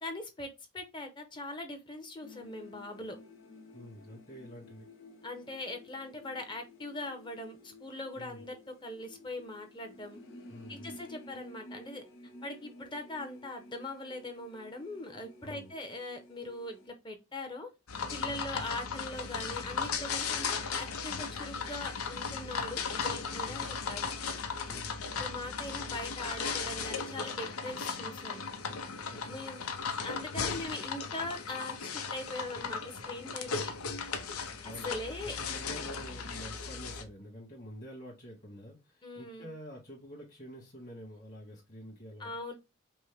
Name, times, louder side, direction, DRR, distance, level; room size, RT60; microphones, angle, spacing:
voice 1, 0.0-3.2 5.2-8.6 8.8-10.2 10.7-12.0 12.4-17.7 18.1-24.1 25.2-28.4 29.3-29.7 30.0-33.7 34.6-35.6 39.0-39.5 42.2-42.5, left 2 dB, 20° left, 0.8 m, -41 dB
sound 1, 2.2-16.9, left 1 dB, 65° left, 1.4 m, -53 dB
voice 2, 3.7-4.9 8.1-8.4 10.5-10.9 15.4-15.7 18.2-18.5 23.4-23.8 24.6-25.0 29.1-29.4 33.5-33.8 34.2-34.9 35.2-42.3, equal, 40° left, 1.7 m, -48 dB
sound 2, 17.9-37.0, left 5 dB, 90° left, 0.8 m, -36 dB
5.3 x 2.1 x 3.3 m
head